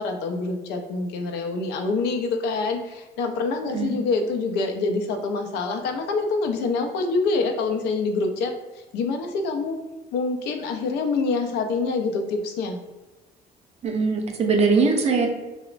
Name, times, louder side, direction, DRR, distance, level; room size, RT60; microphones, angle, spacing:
voice 1, 0.0-9.8 10.1-12.8, left 3 dB, 85° left, 5 dB, 0.4 m, -26 dB
voice 2, 13.8-15.3, right 4 dB, 40° right, 3 dB, 0.5 m, -21 dB
2.9 x 2.0 x 2.4 m, 1.1 s
cardioid pair, 110°, 17 cm